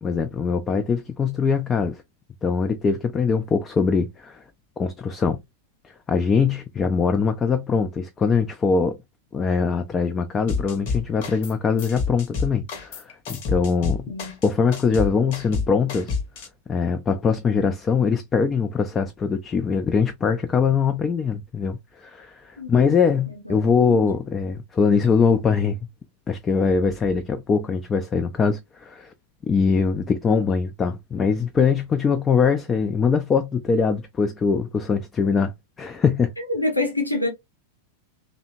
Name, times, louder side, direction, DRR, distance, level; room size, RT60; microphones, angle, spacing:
voice 1, 0.0-2.0 2.4-4.4 4.8-5.4 6.1-9.0 9.3-14.1 14.4-16.2 16.7-25.8 26.3-29.1 29.5-35.5 35.8-36.3, left 5 dB, 20° left, 0.3 m, -22 dB
sound 1, 10.5-11.5 11.8-16.5, left 5 dB, 50° left, 0.8 m, -28 dB
voice 2, 36.4-37.3, left 2 dB, 85° left, 0.7 m, -26 dB
2.8 x 2.1 x 2.5 m
figure-of-eight pair, 90°, 0 cm